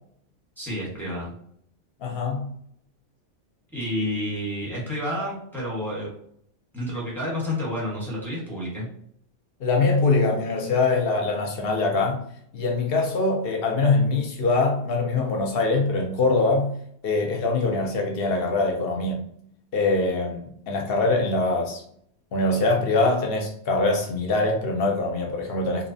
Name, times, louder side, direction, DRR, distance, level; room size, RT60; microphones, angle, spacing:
voice 1, 0.6-1.3 3.7-6.1 6.7-8.9, left 1 dB, ahead, -7 dB, 0.9 m, -30 dB
voice 2, 2.0-2.5 9.6-12.2 12.5-16.8 17.0-19.2 19.7-21.8 22.3-25.9, left 3 dB, 60° left, 2 dB, 0.7 m, -23 dB
2.6 x 2.0 x 2.6 m, 0.66 s
omnidirectional pair, 1.3 m